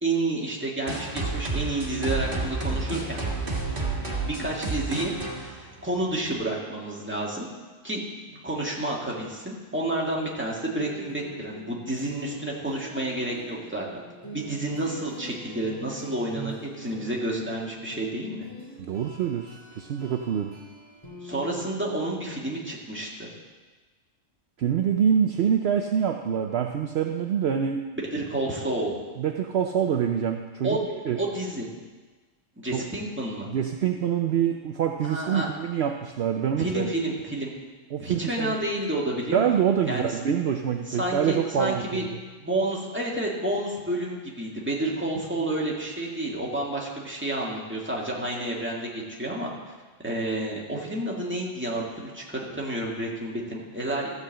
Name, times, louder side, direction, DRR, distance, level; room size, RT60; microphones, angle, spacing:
voice 1, 0.0-3.2 4.3-7.5 7.8-8.0 8.3-13.9 14.3-18.5 21.2-23.3 28.1-28.9 30.6-30.8 31.2-31.7 32.6-33.5 35.0-35.5 36.6-37.5 38.0-39.5 39.8-40.1 40.9-42.0 42.4-49.5 50.0-54.1, right 1 dB, 10° right, -4 dB, 1.8 m, -30 dB
sound 1, 0.9-6.3, right 3 dB, 45° right, 1.9 m, -30 dB
sound 2, 10.7-21.5, equal, 15° left, 3.0 m, -43 dB
voice 2, 18.8-20.5 24.6-27.8 29.2-31.2 32.7-32.8 33.5-36.9 37.9-38.5 39.3-42.2, right 8 dB, 65° right, 4 dB, 0.8 m, -26 dB
14.0 x 4.9 x 7.5 m, 1.3 s
omnidirectional pair, 1.3 m